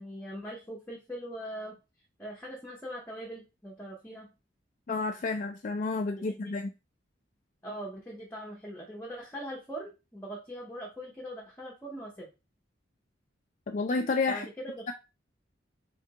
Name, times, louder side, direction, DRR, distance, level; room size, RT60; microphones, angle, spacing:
voice 1, 0.0-1.7 2.2-4.3 6.2-6.5 7.6-12.3 14.3-14.9, equal, 10° left, -3 dB, 0.8 m, -41 dB
voice 2, 4.9-6.7 13.7-14.5, left 3 dB, 40° left, 4 dB, 0.3 m, -30 dB
3.7 x 3.3 x 2.8 m, 0.28 s
head